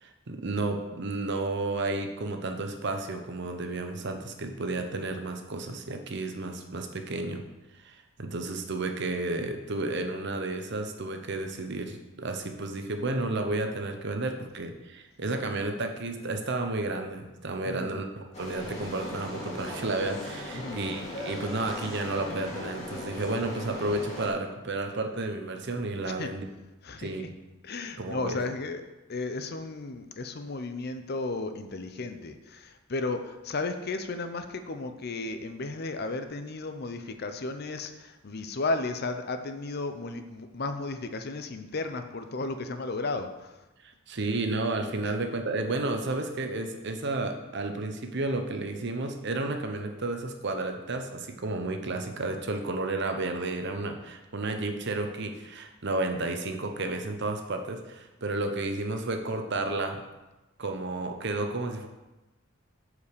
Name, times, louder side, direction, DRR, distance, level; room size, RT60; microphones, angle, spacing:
voice 1, 0.0-7.4 7.8-26.5 27.0-27.3 28.0-28.4 43.8-60.0 60.6-61.9, right 2 dB, 60° right, 5 dB, 0.9 m, -32 dB
voice 2, 17.6-18.0 20.5-20.8 26.1-26.3 26.8-27.3 27.6-28.8 29.1-43.6, left 3 dB, 50° left, 8 dB, 0.7 m, -34 dB
sound 1, 18.3-24.3, left 1 dB, 35° left, 2.5 m, -38 dB
8.3 x 5.0 x 6.7 m, 1.1 s
head